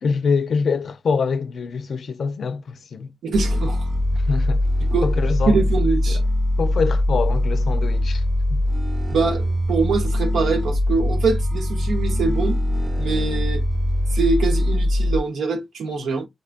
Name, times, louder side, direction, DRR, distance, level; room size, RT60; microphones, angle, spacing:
voice 1, 0.0-3.1 4.1-4.6 5.0-5.6 6.1-6.2 6.6-8.2 8.5-8.6, left 5 dB, 75° left, 0.4 m, -24 dB
voice 2, 3.2-3.8 4.9-5.1 5.5-6.2 9.1-12.6 13.0-13.6 14.1-16.3, right 4 dB, 90° right, 0.7 m, -23 dB
sound 1, 3.3-15.2, left 1 dB, 35° right, 0.8 m, -21 dB
4.2 x 2.3 x 2.4 m
cardioid pair, 50°, 0 cm